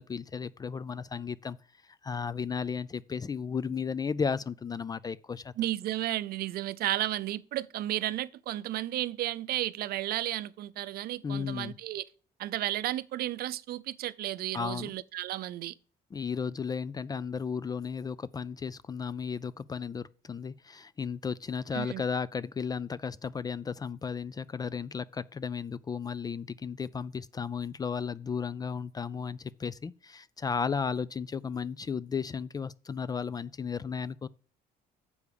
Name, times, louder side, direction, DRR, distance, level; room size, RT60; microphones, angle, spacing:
voice 1, 0.0-1.6 1.8-5.5 11.2-11.7 14.5-14.9 16.1-34.3, left 6 dB, 25° left, 0.3 m, -34 dB
voice 2, 5.6-12.0 12.4-15.7 21.7-22.0, right 14 dB, 65° right, 0.5 m, -33 dB
7.0 x 4.9 x 6.6 m
cardioid pair, 110°, 17 cm